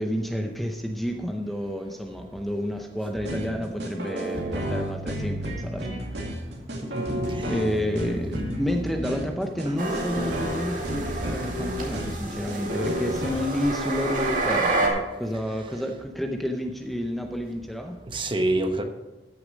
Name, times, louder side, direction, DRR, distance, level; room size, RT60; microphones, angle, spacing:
voice 1, 0.0-6.3 7.4-18.0, equal, ahead, 3 dB, 0.7 m, -30 dB
sound 1, 3.1-13.3, right 1 dB, 75° right, 2.2 m, -32 dB
voice 2, 6.7-7.6 18.1-18.8, right 1 dB, 30° right, 6 dB, 1.0 m, -27 dB
sound 2, 9.8-14.9, right 2 dB, 50° right, 2.3 m, -29 dB
14.0 x 6.7 x 5.1 m, 1.1 s
head